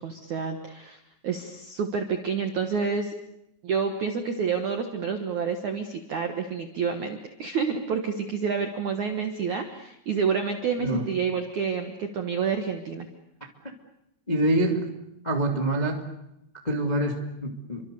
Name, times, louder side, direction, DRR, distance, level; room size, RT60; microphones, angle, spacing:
voice 1, 0.0-3.1 3.6-13.1, right 6 dB, 65° right, 5 dB, 1.9 m, -29 dB
voice 2, 14.3-14.8 15.2-16.0 16.6-17.8, right 1 dB, 20° left, 2 dB, 1.3 m, -25 dB
29.5 x 25.0 x 6.9 m, 0.84 s
omnidirectional pair, 5.5 m